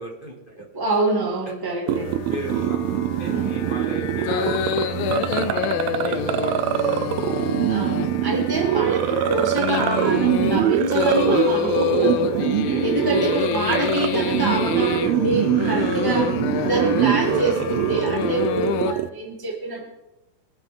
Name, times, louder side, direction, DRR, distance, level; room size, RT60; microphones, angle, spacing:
voice 1, 0.0-0.7 2.3-2.8 3.2-7.1 12.4-12.8, right 1 dB, 20° left, -2 dB, 1.7 m, -35 dB
voice 2, 0.7-2.1 3.3-3.5 7.7-12.5 12.8-16.3 16.6-19.8, right 2 dB, 20° right, -2 dB, 0.5 m, -26 dB
sound 1, 1.9-18.9, left 8 dB, 90° left, 2.0 m, -27 dB
sound 2, 1.9-19.1, right 12 dB, 85° right, 2.1 m, -24 dB
23.5 x 9.0 x 3.8 m, 0.96 s
omnidirectional pair, 4.9 m